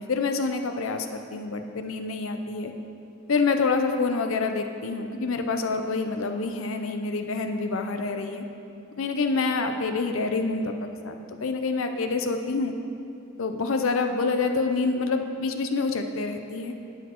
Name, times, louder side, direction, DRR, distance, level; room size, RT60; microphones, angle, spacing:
voice 1, 0.0-2.7 3.3-8.4 9.0-11.1 11.4-12.7 13.4-16.7, left 4 dB, 65° left, 6 dB, 0.6 m, -27 dB
11.5 x 8.1 x 3.0 m, 2.6 s
head